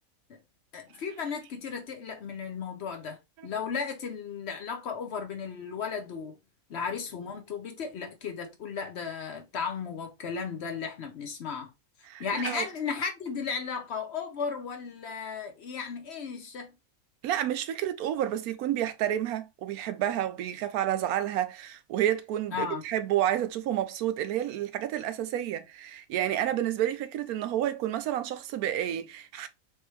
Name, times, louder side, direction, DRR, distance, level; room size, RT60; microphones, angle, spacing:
voice 1, 0.7-6.4 6.7-11.7 12.2-16.7 22.5-22.8, left 6 dB, 55° left, 0.8 m, -35 dB
voice 2, 12.0-12.7 17.2-29.5, right 11 dB, 85° right, 1.1 m, -30 dB
3.6 x 3.3 x 3.1 m
omnidirectional pair, 1.5 m